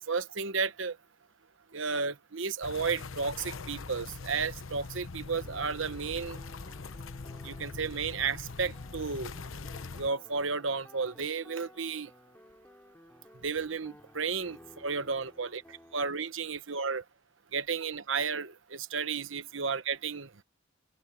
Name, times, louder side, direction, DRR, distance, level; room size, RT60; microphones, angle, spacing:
voice 1, 0.1-1.0 1.7-6.4 7.4-9.3 10.0-12.1 13.4-17.0 17.5-20.4, right 5 dB, 70° right, 1.1 m, -33 dB
sound 1, 2.6-10.1, left 4 dB, 85° left, 0.9 m, -42 dB
Enigmatic Polyphony, 5.3-16.0, left 1 dB, 10° left, 3.4 m, -56 dB
open air
head